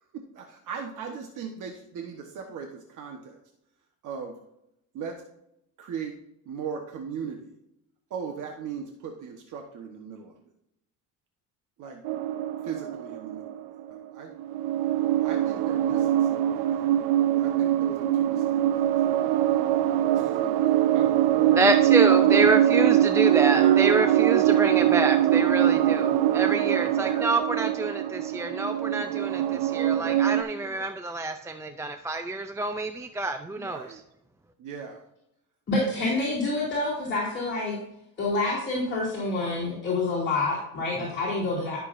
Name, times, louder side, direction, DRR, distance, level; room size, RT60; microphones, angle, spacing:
voice 1, 0.1-3.4 4.0-4.3 4.9-5.2 5.8-6.2 6.5-7.6 8.1-10.3 11.8-12.0 12.6-13.5 13.9-14.3 15.2-16.9 17.4-18.9 20.1-21.6 22.0-22.9 23.3-23.8 24.5-24.9 26.1-26.3 26.8-27.4 30.5-30.9 33.6-34.0 34.6-35.0, right 6 dB, 55° right, 3 dB, 1.2 m, -38 dB
sound 1, 12.0-14.0 14.4-30.4, right 12 dB, 85° right, 0.7 m, -23 dB
voice 2, 21.6-34.0, right 2 dB, 10° right, 7 dB, 0.4 m, -27 dB
voice 3, 35.7-37.7 38.2-41.8, left 2 dB, 30° left, -6 dB, 2.8 m, -27 dB
13.0 x 6.6 x 2.6 m, 0.81 s
cardioid pair, 130°, 36 cm